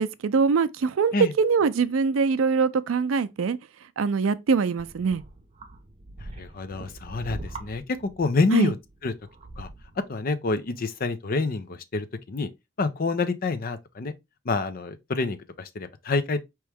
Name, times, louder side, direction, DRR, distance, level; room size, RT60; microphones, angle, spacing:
voice 1, 0.0-3.6 4.0-5.2 8.5-8.7, right 5 dB, 80° right, 0.4 m, -23 dB
sound 1, 4.8-10.1 10.8-10.9, right 2 dB, 30° right, 0.8 m, -42 dB
voice 2, 6.2-8.8 9.0-9.1 9.6-9.7 10.1-12.5 12.8-14.1 14.4-16.4, left 3 dB, 45° left, 0.5 m, -27 dB
4.6 x 3.1 x 3.4 m
head